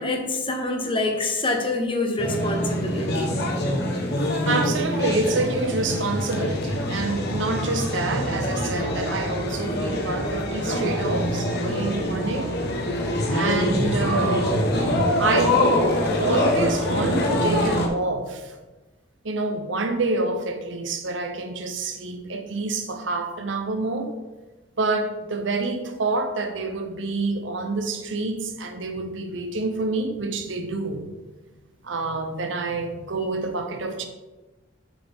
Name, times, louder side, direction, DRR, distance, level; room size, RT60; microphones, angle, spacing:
voice 1, 0.0-3.3, left 2 dB, 25° left, 3 dB, 0.9 m, -26 dB
sound 1, 2.2-17.9, left 1 dB, 60° left, 1.2 m, -24 dB
voice 2, 4.5-12.6 13.3-14.7 15.2-15.6 16.2-18.6 19.2-24.2 24.8-31.1 31.8-34.1, right 3 dB, 70° right, 7 dB, 0.8 m, -27 dB
7.4 x 6.5 x 3.6 m, 1.2 s
head